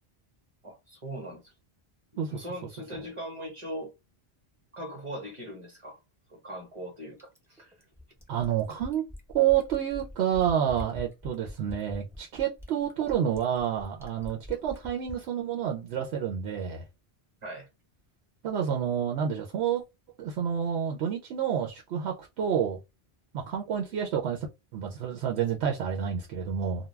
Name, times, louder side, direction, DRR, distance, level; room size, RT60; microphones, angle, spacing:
voice 1, 0.6-1.5 2.3-3.9 4.7-6.0 6.3-7.7 17.4-17.7, equal, 30° right, 0.9 m, -40 dB
Fill (with liquid), 7.2-15.3 16.6-16.7, left 1 dB, 5° right, 0.6 m, -43 dB
voice 2, 8.3-9.1 9.3-16.8 18.4-19.8 20.2-22.8 23.3-24.5 24.7-26.9, right 9 dB, 85° right, 0.8 m, -29 dB
2.3 x 2.2 x 3.1 m
omnidirectional pair, 1.1 m